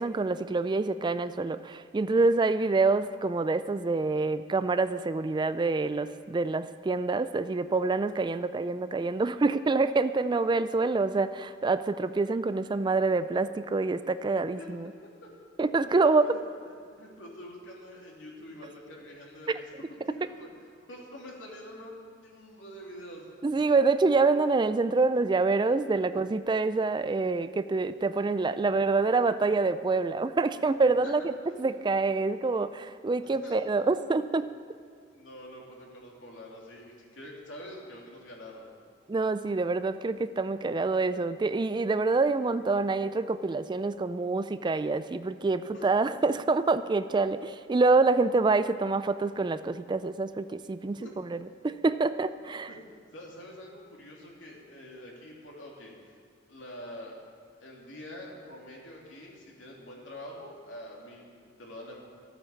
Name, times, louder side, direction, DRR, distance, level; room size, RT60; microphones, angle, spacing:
voice 1, 0.0-14.9 15.6-16.3 19.5-19.6 23.4-31.3 31.6-34.5 39.1-52.7, right 3 dB, 25° right, 13 dB, 0.3 m, -26 dB
voice 2, 15.7-16.4 17.0-20.5 20.9-23.3 26.0-26.1 28.2-28.6 29.0-29.1 31.0-31.6 33.2-33.6 35.1-38.7 45.7-45.9 50.8-51.1 52.3-52.8 53.1-55.9 56.5-57.2 57.6-62.0, left 1 dB, 80° left, -2 dB, 3.1 m, -46 dB
14.5 x 8.7 x 7.2 m, 2.3 s
head